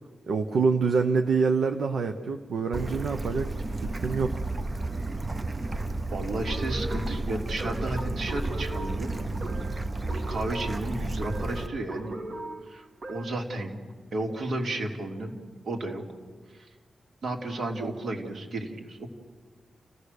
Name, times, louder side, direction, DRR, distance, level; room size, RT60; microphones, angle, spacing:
voice 1, 0.3-4.4 4.8-4.9, right 5 dB, 75° right, 5 dB, 1.0 m, -26 dB
Bird / Stream, 2.7-11.7, right 2 dB, 25° right, 0.7 m, -32 dB
voice 2, 6.1-9.1 10.1-12.2 12.7-13.8 14.1-16.0 16.5-16.7 17.2-19.1, right 2 dB, 60° right, 2 dB, 2.7 m, -33 dB
sound 1, 6.5-13.5, right 2 dB, 40° right, 1.9 m, -39 dB
30.0 x 16.5 x 6.7 m, 1.5 s
wide cardioid pair, 175°, 0 cm